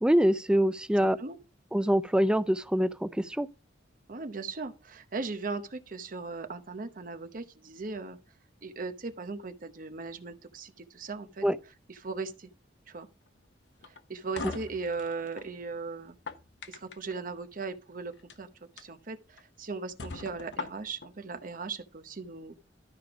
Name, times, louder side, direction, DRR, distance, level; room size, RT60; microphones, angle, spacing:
voice 1, 0.0-1.2 1.7-3.5 11.4-11.6, equal, 5° right, 0.4 m, -25 dB
voice 2, 1.0-1.4 4.1-8.2 8.6-11.5 11.9-12.5 12.9-13.1 13.9-16.2 16.7-18.5 18.8-22.5, right 4 dB, 45° right, 0.8 m, -38 dB
sound 1, 13.8-15.5 16.1-17.1 18.1-18.4 18.8-18.9 19.4-19.5 20.0-21.1, left 3 dB, 70° left, 0.9 m, -41 dB
12.5 x 5.1 x 4.8 m
head